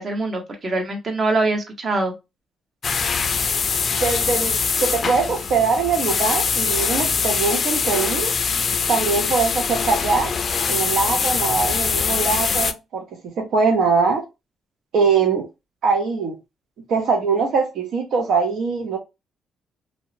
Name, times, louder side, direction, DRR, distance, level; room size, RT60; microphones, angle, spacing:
voice 1, 0.0-2.1, right 2 dB, 40° right, 0.9 m, -23 dB
sound 1, 2.8-12.7, left 5 dB, 45° left, 0.3 m, -23 dB
voice 2, 3.9-8.3 8.9-10.3 10.7-14.3 14.9-15.5 15.8-16.4 16.9-19.0, right 4 dB, 75° right, 0.5 m, -22 dB
2.7 x 2.0 x 2.5 m
cardioid pair, 90°, 0 cm